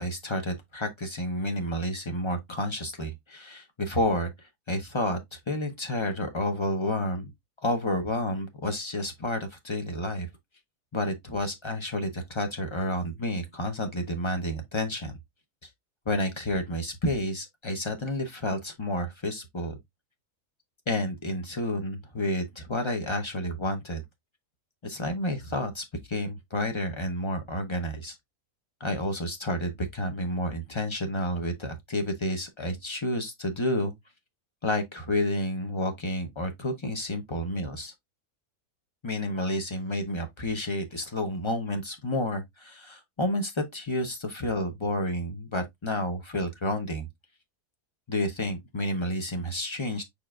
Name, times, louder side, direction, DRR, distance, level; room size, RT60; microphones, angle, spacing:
voice 1, 0.0-7.3 7.6-10.3 10.9-15.2 16.1-19.8 20.9-24.0 24.8-28.2 28.8-33.9 34.6-37.9 39.0-47.1 48.1-50.0, left 1 dB, 35° left, 0.4 m, -30 dB
5.0 x 4.5 x 2.3 m
omnidirectional pair, 1.6 m